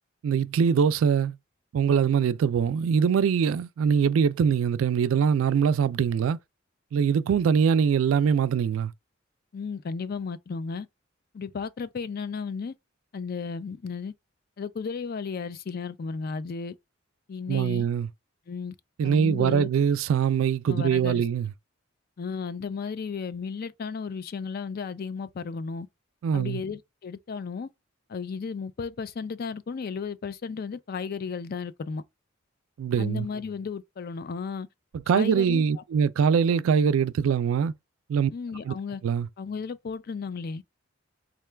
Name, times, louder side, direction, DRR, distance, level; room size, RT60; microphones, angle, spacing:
voice 1, 0.2-1.4 1.7-6.4 6.9-8.9 17.5-18.1 19.0-21.5 26.2-26.6 32.8-33.3 35.1-37.7 38.1-38.3 38.7-38.8 39.0-39.3, right 7 dB, 80° right, 0.3 m, -23 dB
voice 2, 9.5-10.9 11.3-12.7 13.1-14.1 14.6-16.7 17.3-17.9 18.5-18.7 19.0-19.7 20.7-21.2 22.2-25.9 26.3-27.7 28.1-32.0 33.0-34.7 35.1-35.8 38.3-39.0 39.4-40.6, left 5 dB, 50° left, 0.4 m, -34 dB
3.7 x 2.3 x 3.2 m
head